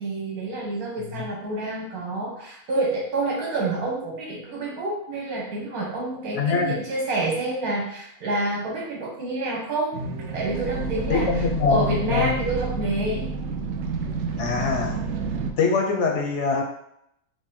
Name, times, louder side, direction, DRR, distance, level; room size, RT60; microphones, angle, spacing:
voice 1, 0.0-10.0 10.3-13.3, right 2 dB, 90° right, -3 dB, 1.7 m, -28 dB
voice 2, 6.4-6.8 11.1-12.4 14.4-15.0 15.6-16.6, left 5 dB, 65° left, 1 dB, 0.8 m, -23 dB
sound 1, 9.9-15.5, right 4 dB, 65° right, 0.8 m, -30 dB
4.7 x 2.1 x 4.1 m, 0.75 s
omnidirectional pair, 1.5 m